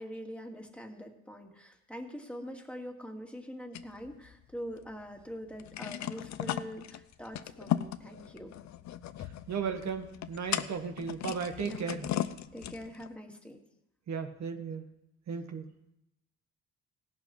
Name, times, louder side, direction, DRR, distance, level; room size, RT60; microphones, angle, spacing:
voice 1, 0.0-8.5 11.6-11.9 12.5-13.6, equal, 5° left, 2 dB, 2.0 m, -44 dB
sound 1, 3.7-4.9 5.2-5.3 5.5-13.1, left 11 dB, 65° left, 0.7 m, -37 dB
voice 2, 9.5-12.1 14.1-14.8 15.3-15.6, right 6 dB, 65° right, 5 dB, 1.6 m, -35 dB
17.0 x 11.5 x 3.2 m, 0.87 s
cardioid pair, 90°, 30 cm